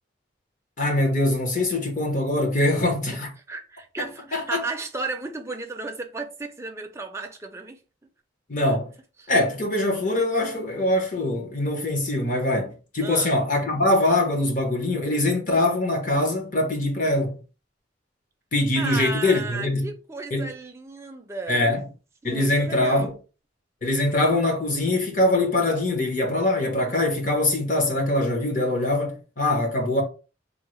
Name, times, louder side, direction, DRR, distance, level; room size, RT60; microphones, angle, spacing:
voice 1, 0.8-3.3 4.3-4.6 8.5-8.9 9.3-17.4 18.5-19.9 20.3-20.5 21.5-21.9 22.2-23.1 23.8-30.0, left 1 dB, 40° left, 0.8 m, -23 dB
voice 2, 3.5-7.8 9.2-9.3 13.0-13.3 18.8-21.7 22.2-23.1, right 3 dB, 15° right, 0.4 m, -34 dB
3.7 x 2.0 x 3.0 m
head